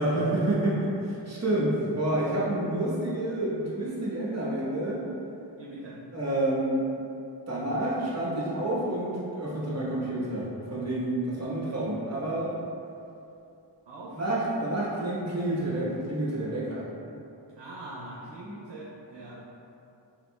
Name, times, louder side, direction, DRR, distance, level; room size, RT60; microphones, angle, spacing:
voice 1, 0.0-5.0 6.1-6.8 7.5-12.5 14.1-16.9, right 1 dB, 35° right, -7 dB, 1.2 m, -29 dB
voice 2, 5.6-6.0 13.9-14.2 17.6-19.4, right 1 dB, 70° right, -6 dB, 0.7 m, -42 dB
5.0 x 3.5 x 2.3 m, 2.7 s
wide cardioid pair, 60°, 44 cm